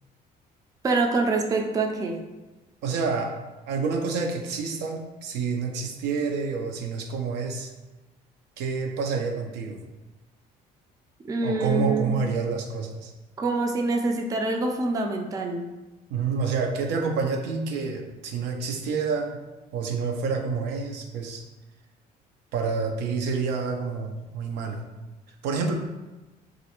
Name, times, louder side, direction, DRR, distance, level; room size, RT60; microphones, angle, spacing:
voice 1, 0.8-2.2 11.2-12.2 13.4-15.7, right 3 dB, 20° right, 3 dB, 0.3 m, -25 dB
voice 2, 2.8-7.7 8.6-9.8 11.4-13.1 16.1-19.4 19.7-21.4 22.5-24.8 25.4-25.7, right 5 dB, 85° right, 3 dB, 0.5 m, -28 dB
3.1 x 2.5 x 2.9 m, 1.1 s
cardioid pair, 110°, 17 cm